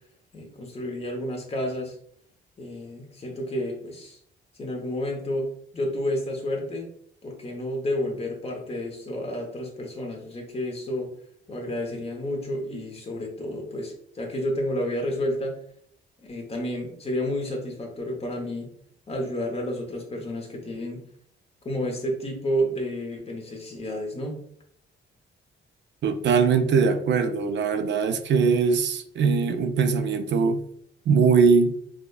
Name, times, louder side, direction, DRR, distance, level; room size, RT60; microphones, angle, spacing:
voice 1, 0.3-2.0 2.6-4.2 4.6-6.9 7.2-11.1 11.5-15.6 16.2-18.8 19.1-21.0 21.6-24.4, equal, 30° left, 1 dB, 1.0 m, -30 dB
voice 2, 26.0-30.6 31.1-31.7, right 5 dB, 65° right, 7 dB, 0.4 m, -21 dB
4.8 x 2.2 x 2.4 m, 0.66 s
cardioid pair, 105°, 20 cm